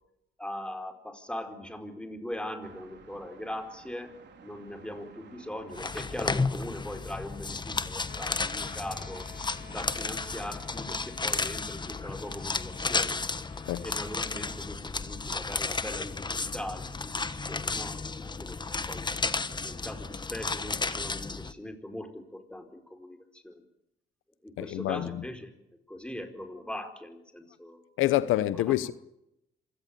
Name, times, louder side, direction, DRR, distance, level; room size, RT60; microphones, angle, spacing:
voice 1, 0.4-4.1 4.4-9.3 9.7-13.2 13.8-19.1 19.6-23.6 24.4-25.5 25.9-27.8 28.7-28.8, left 1 dB, 5° left, 4.7 m, -40 dB
sound 1, 2.6-10.9, right 6 dB, 60° right, 4.3 m, -54 dB
sound 2, 5.7-21.5, left 3 dB, 20° left, 1.3 m, -33 dB
sound 3, 8.1-14.3, left 7 dB, 50° left, 4.5 m, -52 dB
voice 2, 24.6-25.2 28.0-28.9, left 14 dB, 90° left, 1.0 m, -27 dB
26.5 x 18.0 x 8.6 m
cardioid pair, 90°, 20 cm